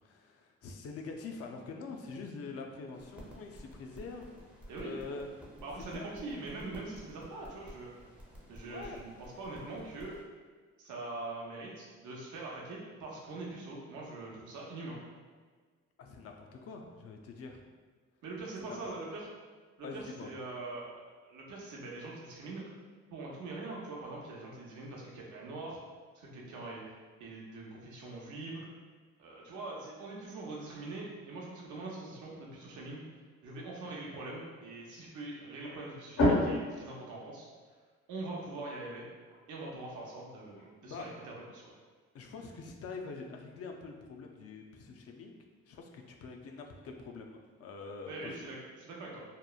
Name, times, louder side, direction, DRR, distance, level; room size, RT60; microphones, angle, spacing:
voice 1, 0.0-4.3 4.8-5.3 5.9-6.1 8.6-9.1 16.0-17.6 18.6-18.9 19.8-20.3 40.8-41.1 42.1-45.4 45.7-48.5, left 4 dB, 50° left, 3 dB, 0.4 m, -45 dB
sound 1, 2.9-10.2, equal, 5° right, 0.5 m, -52 dB
voice 2, 4.7-5.0 5.6-7.9 8.5-10.2 10.8-15.0 18.2-19.3 19.8-21.0 21.3-22.6 23.1-25.8 26.1-26.8 27.2-28.6 29.2-33.0 33.4-37.5 38.1-39.1 39.5-41.7 48.1-49.2, right 2 dB, 75° right, -3 dB, 0.7 m, -43 dB
sound 2, 29.1-48.4, left 1 dB, 90° left, 1.3 m, -40 dB
2.9 x 2.0 x 2.3 m, 1.5 s
cardioid pair, 90°, 30 cm